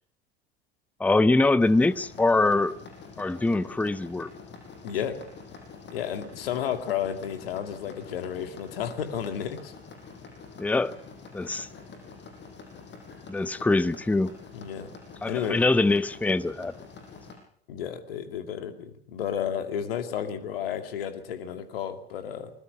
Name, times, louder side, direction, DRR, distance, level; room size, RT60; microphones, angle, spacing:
voice 1, 1.0-2.8 3.2-4.3 10.6-11.0 11.3-11.7 13.3-14.3 15.2-16.7, left 2 dB, 5° left, 0.7 m, -23 dB
sound 1, 1.6-17.4, left 4 dB, 35° left, 6.2 m, -46 dB
voice 2, 4.8-5.2 5.9-9.7 14.5-14.9 15.3-15.6 17.7-22.5, left 9 dB, 65° left, 2.4 m, -32 dB
25.0 x 21.0 x 5.5 m
figure-of-eight pair, 75°, 32 cm